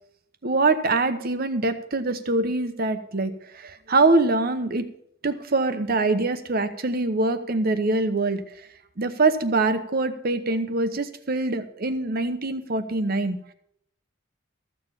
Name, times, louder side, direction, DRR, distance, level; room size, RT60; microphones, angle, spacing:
voice 1, 0.4-4.8 5.2-8.4 9.0-13.4, right 3 dB, 50° right, 10 dB, 0.9 m, -24 dB
14.0 x 7.1 x 5.6 m, 0.71 s
head